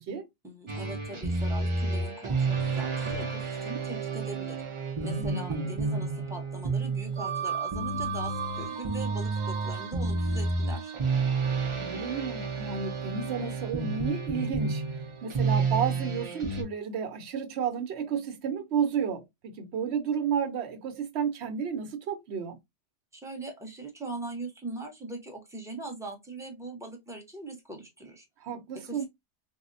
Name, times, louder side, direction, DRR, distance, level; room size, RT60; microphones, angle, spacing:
voice 1, 0.4-4.6 5.0-10.9 23.1-28.3 28.7-29.1, right 2 dB, 5° right, 0.7 m, -41 dB
sound 1, 0.7-16.6, right 4 dB, 45° right, 0.4 m, -30 dB
voice 2, 5.2-5.7 11.7-22.6 28.4-29.1, right 7 dB, 70° right, 0.8 m, -32 dB
3.8 x 2.0 x 2.5 m
omnidirectional pair, 1.2 m